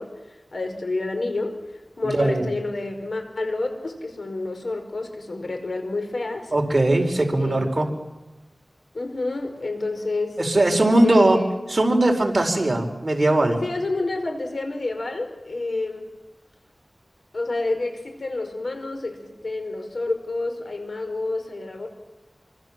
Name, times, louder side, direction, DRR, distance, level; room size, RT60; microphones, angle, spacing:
voice 1, 0.0-6.5 7.4-7.9 8.9-10.4 10.7-11.5 13.6-16.1 17.3-21.9, left 2 dB, 75° left, 5 dB, 5.1 m, -29 dB
voice 2, 2.1-2.5 6.5-7.9 10.4-11.4 11.7-13.6, right 1 dB, 45° right, 3 dB, 4.8 m, -19 dB
27.0 x 25.0 x 7.6 m, 1.1 s
wide cardioid pair, 65°, 0 cm